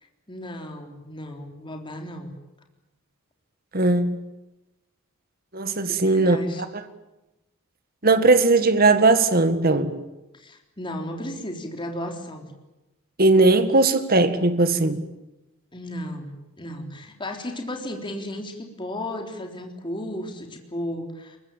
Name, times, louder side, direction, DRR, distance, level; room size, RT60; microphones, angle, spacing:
voice 1, 0.3-2.3 5.9-6.6 10.3-12.5 15.7-21.4, left 1 dB, 25° left, 3.6 m, -34 dB
voice 2, 3.7-4.2 5.5-6.4 8.0-9.9 13.2-15.0, right 3 dB, 45° right, 1.9 m, -18 dB
23.5 x 22.0 x 8.9 m
head